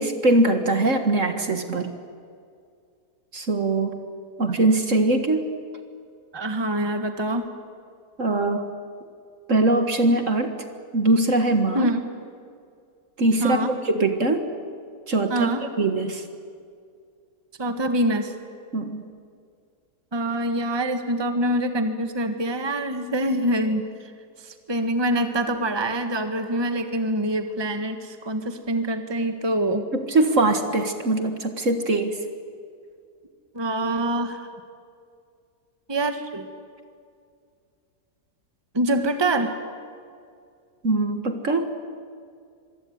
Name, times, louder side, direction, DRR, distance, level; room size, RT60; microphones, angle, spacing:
voice 1, 0.0-1.9 3.3-4.0 4.4-5.5 8.2-8.7 9.5-10.6 10.9-11.9 13.2-14.4 15.1-15.5 15.8-16.2 18.7-19.0 29.9-32.2 40.8-41.7, right 2 dB, 50° right, 7 dB, 2.0 m, -22 dB
voice 2, 6.3-7.5 11.7-12.0 13.4-13.7 15.3-15.7 17.6-18.3 20.1-24.1 24.4-29.8 33.5-34.5 35.9-36.5 38.7-39.6, right 1 dB, 15° right, 7 dB, 1.6 m, -25 dB
25.5 x 23.5 x 9.5 m, 2.3 s
omnidirectional pair, 1.8 m